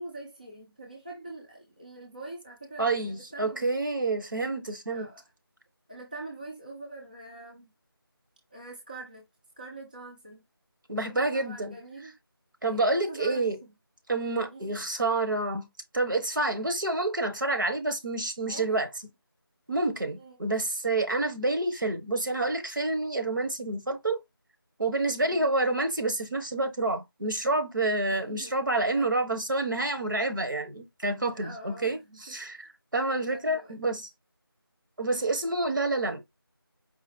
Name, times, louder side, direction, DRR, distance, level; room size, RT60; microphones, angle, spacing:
voice 1, 0.0-3.7 4.9-5.2 5.9-7.7 8.5-9.3 9.6-10.4 11.0-12.2 12.6-13.7 14.5-14.8 18.5-18.9 20.2-20.4 25.3-25.5 28.1-28.6 29.0-29.2 31.3-32.4 33.0-33.8 35.1-35.3, right 2 dB, 20° right, 0.5 m, -44 dB
voice 2, 2.8-5.1 10.9-11.8 12.6-13.6 14.1-15.7 15.9-18.9 19.7-24.2 24.8-34.1 35.0-36.2, right 2 dB, 55° right, 1.1 m, -28 dB
5.0 x 2.0 x 4.1 m
figure-of-eight pair, 170°, 13 cm